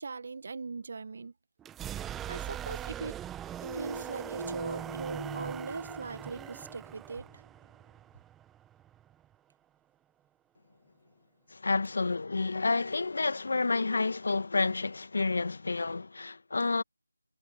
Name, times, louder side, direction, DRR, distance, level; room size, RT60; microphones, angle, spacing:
voice 1, 0.0-1.3 2.1-3.2 3.7-7.3, right 4 dB, 40° right, 1.8 m, -40 dB
sound 1, 1.6-9.3, right 11 dB, 5° right, 1.4 m, -41 dB
sound 2, 3.6-7.3, right 1 dB, 90° right, 1.4 m, -42 dB
voice 2, 11.5-16.8, left 3 dB, 55° left, 1.6 m, -29 dB
figure-of-eight pair, 165°, 0 cm